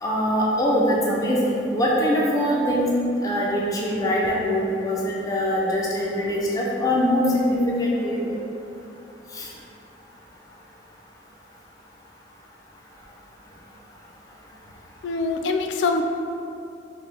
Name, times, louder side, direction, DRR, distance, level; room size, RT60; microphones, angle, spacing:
voice 1, 0.0-2.9 3.2-8.3 9.3-9.5, equal, 20° left, -4 dB, 0.5 m, -23 dB
voice 2, 15.0-16.0, left 3 dB, 85° left, 5 dB, 0.3 m, -24 dB
5.7 x 2.2 x 3.3 m, 2.8 s
head